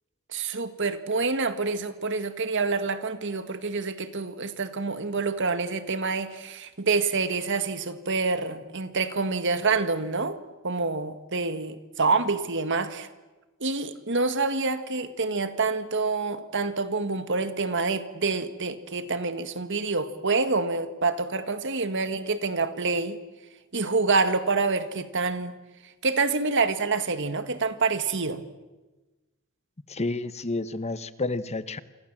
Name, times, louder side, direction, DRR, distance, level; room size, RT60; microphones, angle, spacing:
voice 1, 0.3-10.4 10.6-13.1 13.6-23.2 23.7-25.6 26.0-28.4, right 4 dB, 60° right, 1.9 m, -27 dB
voice 2, 29.9-31.8, left 2 dB, 30° left, 1.0 m, -30 dB
28.5 x 26.0 x 7.5 m
head